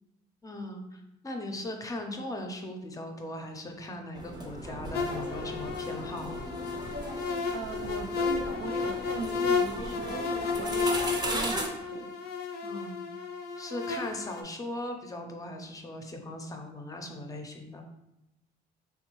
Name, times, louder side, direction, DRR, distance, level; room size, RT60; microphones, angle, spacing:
voice 1, 0.4-6.4 12.6-13.0 13.6-17.8, left 1 dB, 20° left, 3 dB, 0.5 m, -39 dB
sound 1, 4.1-11.7, right 1 dB, 25° right, 0.6 m, -37 dB
sound 2, 4.9-14.4, left 5 dB, 75° left, 0.5 m, -32 dB
voice 2, 7.5-10.2 10.6-12.1, right 5 dB, 75° right, 7 dB, 0.4 m, -39 dB
3.5 x 2.6 x 2.9 m, 0.91 s
cardioid pair, 110°, 17 cm